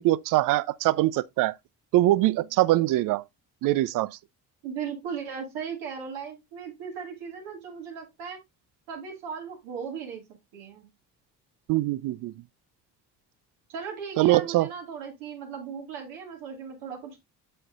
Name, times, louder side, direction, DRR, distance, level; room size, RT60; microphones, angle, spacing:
voice 1, 0.0-1.5 1.9-3.2 3.6-4.1 11.7-12.3 14.2-14.7, right 16 dB, 45° right, 0.4 m, -23 dB
voice 2, 4.6-8.4 8.9-10.2 10.5-10.9 13.7-17.2, right 6 dB, 65° right, 2.2 m, -37 dB
7.5 x 6.7 x 2.4 m
figure-of-eight pair, 45°, 50 cm